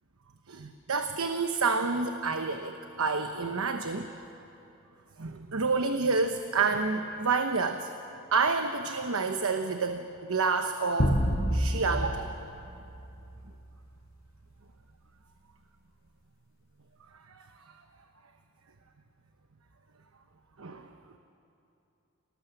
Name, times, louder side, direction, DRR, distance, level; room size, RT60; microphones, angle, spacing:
voice 1, 0.5-4.1 5.2-7.9 8.3-11.2 11.5-12.4 17.3-17.5 20.6-20.9, right 4 dB, 90° right, 6 dB, 1.0 m, -29 dB
sound 1, 11.0-13.6, equal, 45° left, 4.7 m, -28 dB
29.0 x 19.0 x 7.3 m, 2.8 s
head